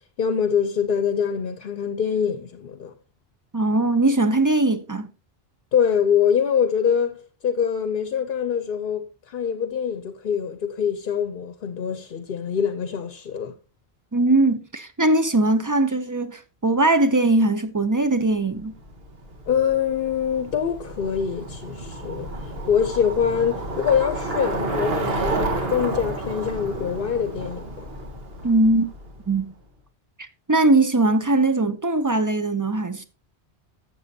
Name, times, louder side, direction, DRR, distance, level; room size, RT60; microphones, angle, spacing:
voice 1, 0.2-2.9 5.7-13.5 19.5-22.3 22.7-27.9, left 7 dB, 60° left, 0.8 m, -24 dB
voice 2, 3.5-5.1 14.1-18.7 28.4-28.9 29.3-29.5 30.2-33.0, right 2 dB, 25° right, 0.4 m, -20 dB
Bicycle, 18.5-29.4, right 2 dB, 65° right, 1.7 m, -31 dB
12.0 x 7.4 x 2.7 m
omnidirectional pair, 1.1 m